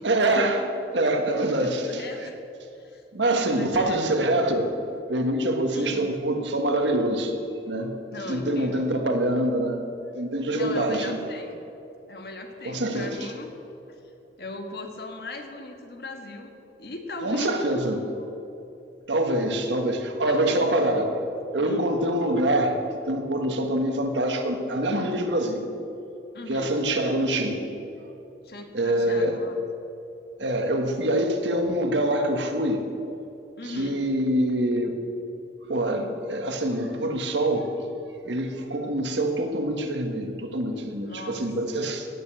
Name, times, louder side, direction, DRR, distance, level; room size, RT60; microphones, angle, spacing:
voice 1, 0.0-1.8 2.2-2.3 3.1-4.8 5.1-7.3 7.7-7.9 8.3-9.9 10.1-11.2 12.6-13.1 17.2-18.0 19.1-21.2 21.5-22.8 23.1-25.7 26.5-27.6 28.7-29.4 30.4-32.9 33.6-35.0 35.7-37.7 38.2-42.1, right 1 dB, 90° right, 4 dB, 1.6 m, -25 dB
voice 2, 1.2-2.4 2.7-3.0 3.5-4.1 5.7-6.1 8.1-8.9 10.5-11.6 12.1-13.5 13.9-14.0 14.4-16.5 16.8-18.1 20.2-20.7 21.5-21.8 26.3-26.8 28.4-29.6 33.6-34.0 41.0-41.4, left 2 dB, 60° left, 4 dB, 1.6 m, -38 dB
17.5 x 6.9 x 7.7 m, 2.8 s
head